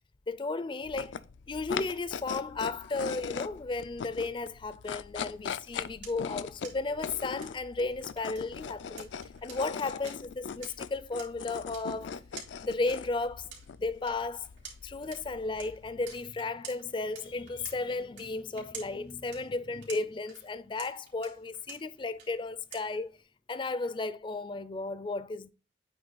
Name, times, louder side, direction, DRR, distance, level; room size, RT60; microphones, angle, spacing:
voice 1, 0.3-1.1 1.5-9.1 9.4-12.2 12.6-13.5 13.8-14.5 14.8-23.1 23.5-25.5, left 3 dB, 25° left, 0.4 m, -34 dB
sound 1, 0.8-16.2, left 6 dB, 90° left, 0.4 m, -41 dB
sound 2, 5.5-23.2, right 6 dB, 85° right, 3.0 m, -52 dB
8.7 x 3.1 x 3.9 m
head